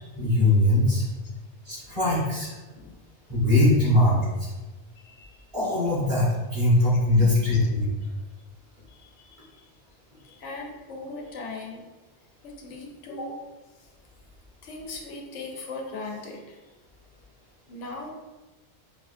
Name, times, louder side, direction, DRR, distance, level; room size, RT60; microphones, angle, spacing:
voice 1, 0.2-1.0 1.6-2.5 3.3-4.5 5.5-7.9, left 1 dB, 25° right, -9 dB, 1.5 m, -21 dB
voice 2, 7.1-7.6 8.9-9.6 10.2-11.8 12.6-13.4 14.6-16.6 17.7-18.1, left 3 dB, 85° left, 1 dB, 1.1 m, -38 dB
4.9 x 2.7 x 2.6 m, 1.2 s
omnidirectional pair, 1.2 m